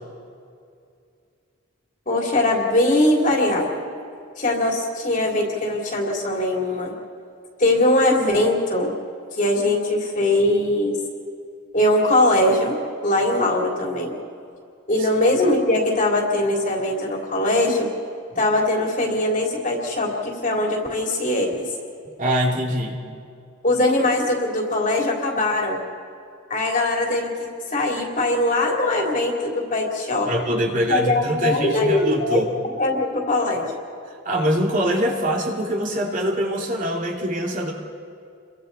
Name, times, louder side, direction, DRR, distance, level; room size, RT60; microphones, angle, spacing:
voice 1, 2.1-3.8 4.4-6.9 7.6-8.9 9.4-10.9 11.7-12.8 13.0-14.1 14.9-17.9 18.4-21.7 23.6-25.8 26.5-27.3 27.7-30.3 30.9-32.4 32.8-33.7, left 1 dB, 40° left, -1 dB, 3.3 m, -21 dB
voice 2, 22.2-23.0 30.2-32.5 34.2-37.7, equal, 40° right, -1 dB, 2.6 m, -23 dB
29.5 x 23.5 x 4.1 m, 2.4 s
head